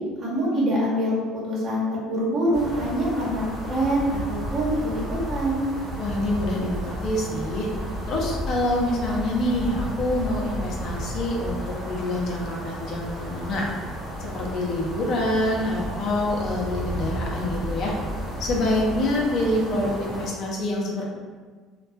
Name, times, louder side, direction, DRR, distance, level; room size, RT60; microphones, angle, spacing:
voice 1, 0.2-5.6, equal, 45° right, -6 dB, 0.9 m, -25 dB
sound 1, 2.5-20.3, equal, 20° right, 0.9 m, -33 dB
voice 2, 6.0-7.7 8.1-13.7 14.2-17.9 18.4-21.0, left 1 dB, 60° left, -2 dB, 0.5 m, -26 dB
2.4 x 2.2 x 2.3 m, 1.5 s
hypercardioid pair, 75°, 0 cm